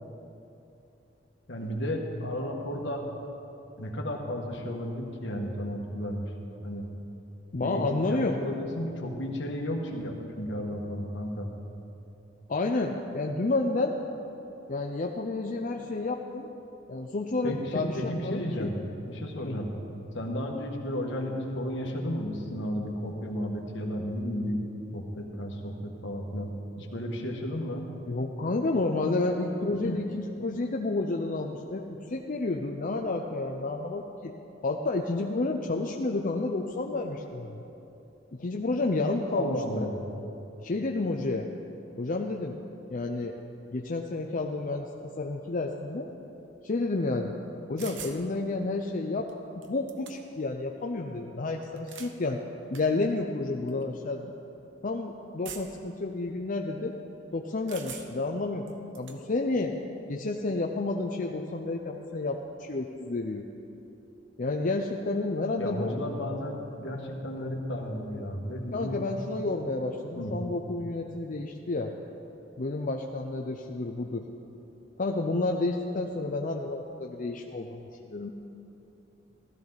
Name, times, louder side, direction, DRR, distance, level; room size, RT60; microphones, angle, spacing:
voice 1, 1.5-3.1 3.8-6.2 6.6-6.9 7.6-11.5 17.4-18.8 19.1-19.7 20.1-24.6 24.9-27.9 29.8-30.0 39.3-40.0 65.6-69.0 70.1-70.4, equal, 75° left, 1 dB, 1.6 m, -33 dB
voice 2, 7.5-8.4 12.5-13.9 14.7-16.5 16.9-18.7 19.4-19.6 28.1-34.4 34.6-37.6 38.3-39.9 40.6-41.5 42.0-42.6 42.9-43.4 43.7-44.9 45.2-46.1 46.6-47.3 47.7-49.3 49.7-52.4 52.7-54.3 54.8-56.9 57.3-58.7 58.9-59.8 60.1-63.5 64.4-66.0 68.7-71.9 72.6-74.2 75.0-78.3, left 2 dB, 45° left, 1 dB, 0.6 m, -30 dB
sound 1, 47.8-48.2 49.3-49.4 49.6-50.4 51.6-52.2 52.7-52.8 53.7-53.8 55.4-55.9 57.7-58.3 58.7-59.2, right 7 dB, 80° right, 0.9 m, -43 dB
15.5 x 13.5 x 4.0 m, 2.9 s
head